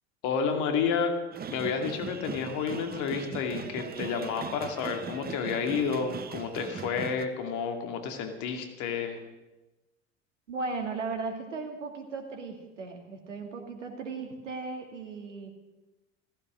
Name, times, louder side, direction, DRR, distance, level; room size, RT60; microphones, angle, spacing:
voice 1, 0.2-1.1 1.5-9.2, left 6 dB, 55° left, 6 dB, 2.6 m, -30 dB
sound 1, 1.3-7.3, right 7 dB, 25° right, 1.2 m, -39 dB
voice 2, 10.5-15.5, right 4 dB, 80° right, 4 dB, 2.6 m, -36 dB
15.5 x 15.0 x 6.3 m, 1.1 s
figure-of-eight pair, 75°, 36 cm